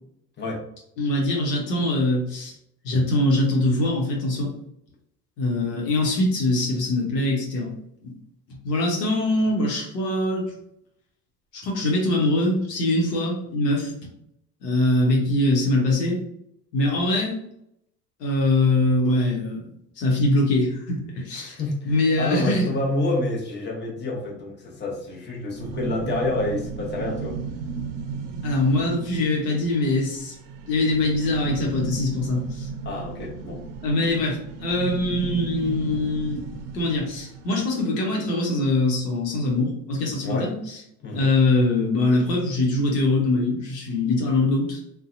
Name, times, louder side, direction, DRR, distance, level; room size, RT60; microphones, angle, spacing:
voice 1, 1.0-2.5 2.8-4.5 5.4-7.7 8.0-8.1 8.6-10.5 11.5-13.9 14.6-16.2 16.7-17.4 18.2-19.6 20.0-21.6 21.8-22.7 28.4-30.3 30.7-32.7 33.8-36.4 36.7-40.8 41.1-44.8, left 2 dB, 85° left, -1 dB, 0.9 m, -23 dB
voice 2, 21.3-27.4 32.8-33.6 40.2-40.5 41.0-41.4, left 2 dB, 20° left, -2 dB, 0.9 m, -28 dB
sound 1, 25.6-37.5, right 5 dB, 65° right, 0.6 m, -34 dB
2.6 x 2.2 x 2.5 m, 0.74 s
hypercardioid pair, 70°, 47 cm